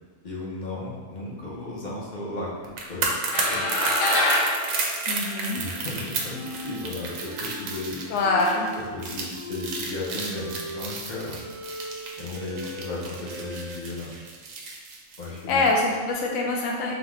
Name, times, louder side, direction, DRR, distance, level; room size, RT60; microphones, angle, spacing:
voice 1, 0.2-3.1 3.5-3.7 5.6-8.0 8.9-11.4 12.2-14.1 15.2-15.7, left 2 dB, 40° left, -5 dB, 0.8 m, -35 dB
sound 1, 2.6-15.8 16.1-16.3, right 4 dB, 90° right, 1.1 m, -32 dB
sound 2, 3.3-5.9, left 1 dB, 70° left, 1.1 m, -25 dB
voice 2, 5.1-5.7 8.1-8.7 15.5-16.9, left 3 dB, 90° left, -1 dB, 1.0 m, -24 dB
sound 3, 6.3-6.8 7.2-7.8 8.1-8.8 9.2-13.8, equal, 65° right, 1.2 m, -39 dB
3.9 x 3.7 x 3.0 m, 1.5 s
omnidirectional pair, 1.3 m